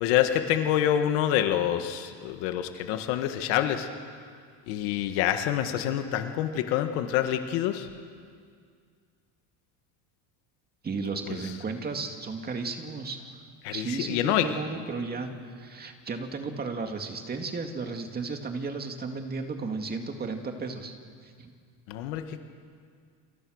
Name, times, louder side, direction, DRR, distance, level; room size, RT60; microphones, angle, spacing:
voice 1, 0.0-3.9 4.7-7.9 11.3-11.4 13.6-14.5 21.9-22.4, left 11 dB, 75° left, 7 dB, 1.8 m, -27 dB
voice 2, 10.8-13.4 13.7-15.3 15.6-21.0 21.2-21.5, right 4 dB, 20° right, 5 dB, 2.2 m, -34 dB
28.0 x 28.0 x 6.5 m, 2.1 s
cardioid pair, 160°, 46 cm